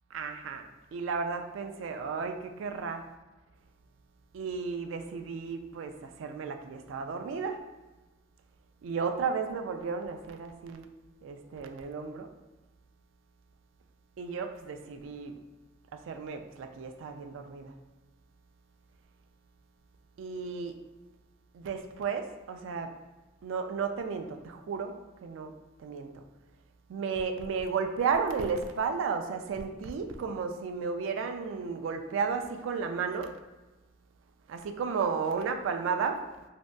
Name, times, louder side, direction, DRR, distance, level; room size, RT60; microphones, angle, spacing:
voice 1, 0.1-0.6 0.9-3.0 4.3-7.6 8.8-10.9 11.2-12.3 14.2-15.3 16.1-17.7 20.2-20.7 21.5-22.9 23.4-24.9 25.2-25.5 25.8-26.1 26.9-33.3 34.5-36.2, right 5 dB, 75° right, 6 dB, 0.3 m, -33 dB
3.0 x 2.6 x 2.2 m, 1.1 s
head